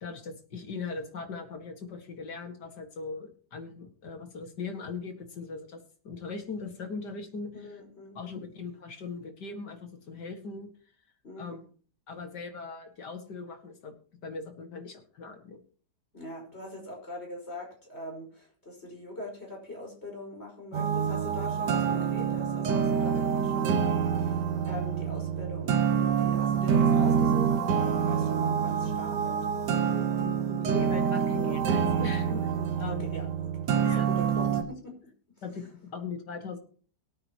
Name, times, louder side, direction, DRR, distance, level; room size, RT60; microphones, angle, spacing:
voice 1, 0.0-7.7 8.2-10.7 11.4-11.7 12.1-13.9 14.2-15.6 30.2-33.0 33.8-34.1 34.3-34.6 35.4-36.6, left 4 dB, 80° left, 6 dB, 2.6 m, -40 dB
voice 2, 7.5-8.2 11.2-11.5 16.1-29.4 29.7-30.0 32.6-33.5 33.7-34.9 35.4-35.6, left 1 dB, 40° left, 0 dB, 5.7 m, -42 dB
sound 1, 20.7-34.6, right 7 dB, 80° right, 1.7 m, -26 dB
23.0 x 8.9 x 3.0 m, 0.43 s
omnidirectional pair, 1.8 m